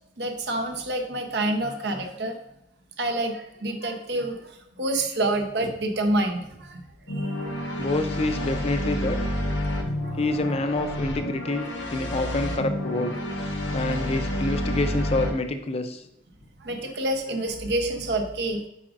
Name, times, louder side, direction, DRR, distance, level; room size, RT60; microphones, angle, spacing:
voice 1, 0.2-2.4 3.0-6.8 7.1-7.8 10.0-10.2 12.3-12.4 16.6-18.6, right 1 dB, 60° right, 4 dB, 0.8 m, -28 dB
sound 1, 7.1-15.3, left 1 dB, 85° left, 1.2 m, -29 dB
voice 2, 7.8-9.2 10.2-13.2 13.7-16.0, left 2 dB, 35° left, 7 dB, 0.5 m, -27 dB
8.3 x 5.0 x 2.5 m, 0.82 s
head